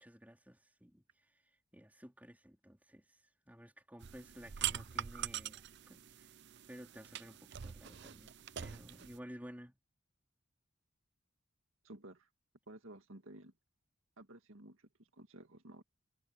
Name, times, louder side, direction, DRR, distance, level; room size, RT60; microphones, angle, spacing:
voice 1, 0.0-6.3 6.7-9.8, equal, 5° right, 4.3 m, -54 dB
sound 1, 4.0-9.2, right 10 dB, 55° right, 0.5 m, -43 dB
voice 2, 11.8-12.3 12.7-13.5 14.2-15.8, right 1 dB, 70° right, 2.0 m, -54 dB
head